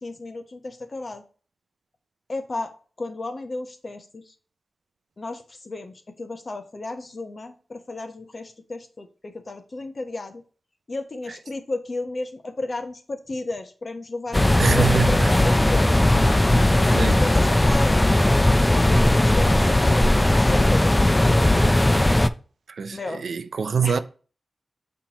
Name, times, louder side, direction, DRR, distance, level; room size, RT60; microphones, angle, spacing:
voice 1, 0.0-1.2 2.3-2.7 3.0-4.3 5.2-10.4 10.9-16.1 16.7-18.0 18.7-21.5 22.9-23.2 23.8-24.0, left 2 dB, 55° left, 0.9 m, -33 dB
sound 1, 14.3-22.3, left 1 dB, 20° left, 0.4 m, -18 dB
voice 2, 14.6-15.3 16.9-17.2 22.7-24.0, right 6 dB, 80° right, 0.4 m, -24 dB
7.1 x 4.5 x 3.0 m
cardioid pair, 55°, 0 cm